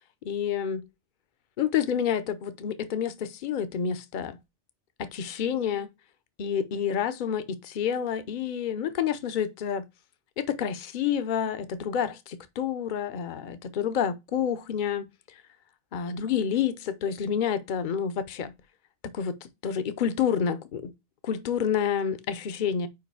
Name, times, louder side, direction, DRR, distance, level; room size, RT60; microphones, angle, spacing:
voice 1, 0.2-0.8 1.6-4.4 5.0-5.9 6.4-9.8 10.4-15.1 15.9-18.5 19.1-20.9 21.2-22.9, left 8 dB, 50° left, 0.7 m, -29 dB
4.8 x 4.8 x 4.6 m
omnidirectional pair, 1.2 m